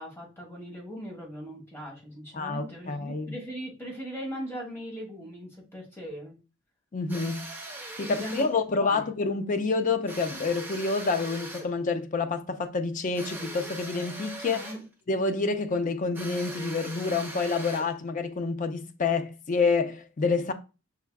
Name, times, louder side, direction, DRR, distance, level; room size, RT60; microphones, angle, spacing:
voice 1, 0.0-6.3 8.0-8.5 8.7-9.1 14.5-14.8, equal, 10° left, 1.4 m, -39 dB
voice 2, 2.3-3.3 6.9-7.5 8.0-14.7 15.1-20.5, left 4 dB, 35° left, 0.4 m, -28 dB
sound 1, 7.1-8.6 10.1-11.7 13.1-14.9 16.1-18.0, right 1 dB, 10° right, 0.8 m, -40 dB
5.4 x 3.5 x 2.3 m
head